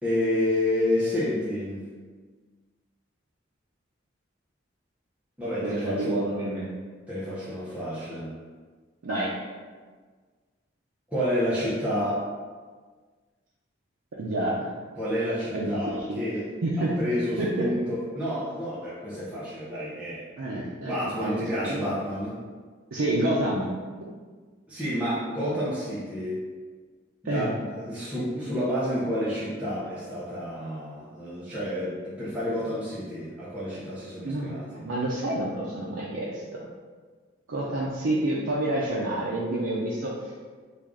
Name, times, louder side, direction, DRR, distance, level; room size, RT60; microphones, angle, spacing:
voice 1, 0.0-1.8 5.4-6.2 7.1-8.3 11.1-12.3 15.0-16.5 17.0-20.2 20.8-22.4 24.7-26.4 27.2-34.8, left 1 dB, 5° right, -11 dB, 0.6 m, -29 dB
voice 2, 5.6-6.7 9.0-9.3 14.2-14.7 15.5-16.2 16.6-16.9 17.4-17.6 20.4-20.9 21.2-21.9 22.9-23.7 27.2-27.5 34.2-34.6 34.8-36.7 37.5-40.3, right 1 dB, 85° right, -5 dB, 0.5 m, -28 dB
3.3 x 2.4 x 3.5 m, 1.5 s
head